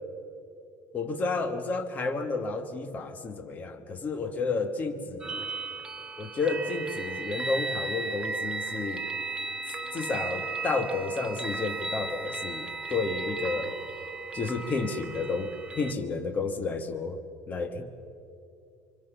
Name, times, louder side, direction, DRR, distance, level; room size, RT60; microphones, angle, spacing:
voice 1, 0.9-5.5 6.2-9.1 9.9-13.8 14.3-17.2 17.5-17.9, left 3 dB, 25° left, 7 dB, 1.3 m, -31 dB
sound 1, 5.2-15.9, right 4 dB, 15° right, 1.1 m, -35 dB
25.0 x 25.0 x 6.9 m, 2.6 s
cardioid pair, 175°, 7 cm